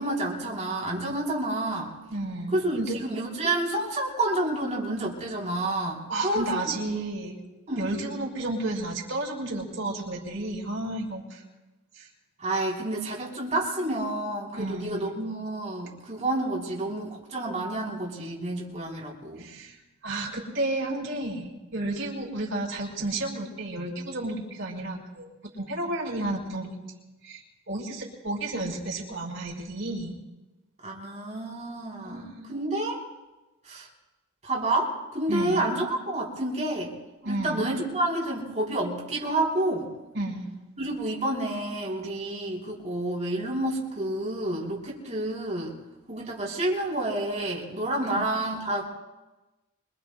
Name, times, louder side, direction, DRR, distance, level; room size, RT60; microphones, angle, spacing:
voice 1, 0.0-1.9 2.5-6.8 7.7-7.9 12.4-19.5 30.8-33.0 33.7-33.9 34.4-36.9 37.3-39.9 40.8-45.7 46.1-48.9, right 1 dB, 35° right, -4 dB, 3.7 m, -29 dB
voice 2, 2.1-3.0 6.1-7.4 7.8-11.4 12.0-12.1 14.5-15.1 19.4-19.7 20.0-25.3 25.5-26.7 27.2-27.4 27.7-30.1 32.0-32.5 35.3-35.6 37.2-37.6 40.1-40.5 48.1-48.3, right 2 dB, 65° right, -3 dB, 5.0 m, -32 dB
25.5 x 24.0 x 2.3 m, 1.1 s
head